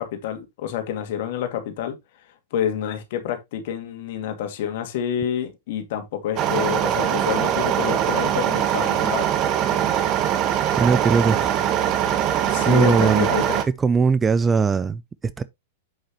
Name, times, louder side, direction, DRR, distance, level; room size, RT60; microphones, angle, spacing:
voice 1, 0.0-2.0 2.5-9.3 12.4-13.6, left 9 dB, 60° left, 2.3 m, -28 dB
sound 1, 6.4-13.6, right 10 dB, 40° right, 1.3 m, -22 dB
voice 2, 10.8-11.5 12.6-13.3 13.8-15.4, right 5 dB, 15° right, 0.5 m, -20 dB
8.0 x 6.4 x 3.0 m
hypercardioid pair, 110°, 0 cm